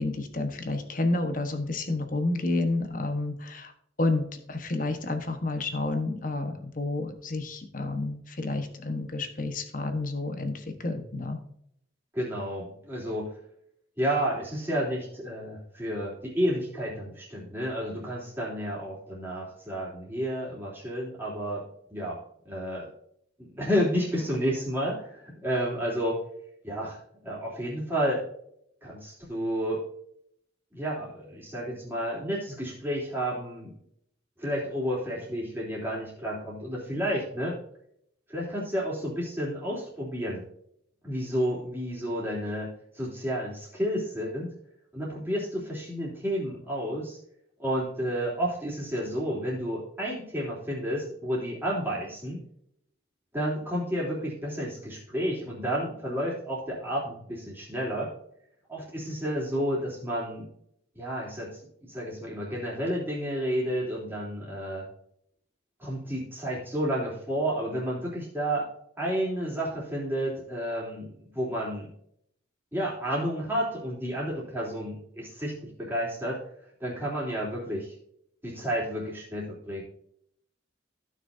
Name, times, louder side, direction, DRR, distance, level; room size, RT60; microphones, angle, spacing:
voice 1, 0.0-3.7 4.0-11.4, left 2 dB, 45° left, 7 dB, 1.2 m, -30 dB
voice 2, 12.1-13.3 14.0-21.6 21.9-22.2 22.4-22.9 23.4-26.2 26.6-27.0 27.2-28.2 28.8-29.8 30.7-33.7 34.4-37.5 38.3-40.4 41.0-44.5 44.9-47.2 47.6-52.4 53.3-58.1 58.7-60.5 60.9-64.8 65.8-68.7 69.0-71.9 72.7-76.4 76.8-77.9 78.4-79.8, equal, 10° right, -6 dB, 3.3 m, -31 dB
15.5 x 6.3 x 2.7 m, 0.71 s
head